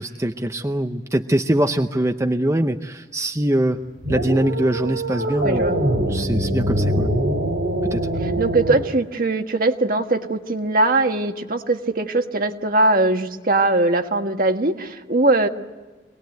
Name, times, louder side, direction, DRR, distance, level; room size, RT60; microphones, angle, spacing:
voice 1, 0.0-3.8 4.1-5.6 6.1-7.1 7.9-8.1, right 1 dB, 15° right, 5 dB, 0.7 m, -22 dB
sound 1, 4.0-8.8, right 1 dB, 85° right, 4.2 m, -23 dB
voice 2, 5.4-5.8 8.2-15.5, right 2 dB, 55° right, 5 dB, 1.5 m, -20 dB
26.0 x 19.5 x 9.2 m, 1.3 s
head